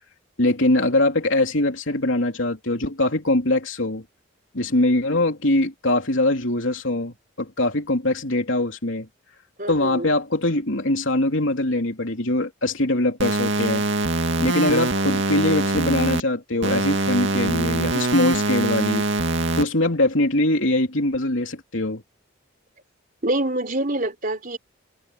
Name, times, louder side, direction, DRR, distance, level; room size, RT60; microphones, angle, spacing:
voice 1, 0.4-4.0 4.5-9.1 9.7-13.8 14.4-19.1 19.6-22.0, left 2 dB, 65° left, 3.3 m, -22 dB
voice 2, 9.6-10.1 23.2-24.6, right 1 dB, 40° right, 4.1 m, -25 dB
sound 1, 13.2-16.2 16.6-19.6, right 2 dB, 60° right, 2.3 m, -23 dB
head